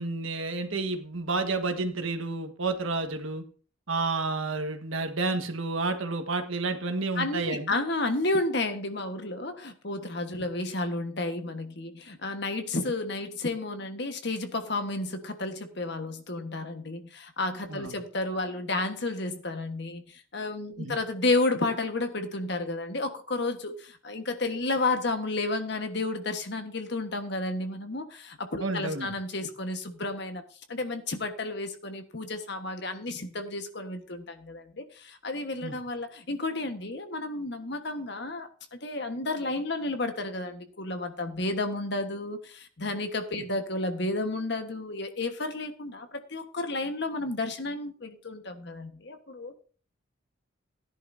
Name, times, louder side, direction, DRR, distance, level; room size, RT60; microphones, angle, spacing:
voice 1, 0.0-3.4 3.9-7.7 17.7-17.9 20.8-21.0 28.6-29.1 35.6-35.8, right 3 dB, 75° right, 6 dB, 1.5 m, -30 dB
voice 2, 7.2-30.4 30.7-49.5, left 2 dB, 55° left, 7 dB, 1.4 m, -32 dB
16.5 x 10.5 x 2.7 m, 0.40 s
head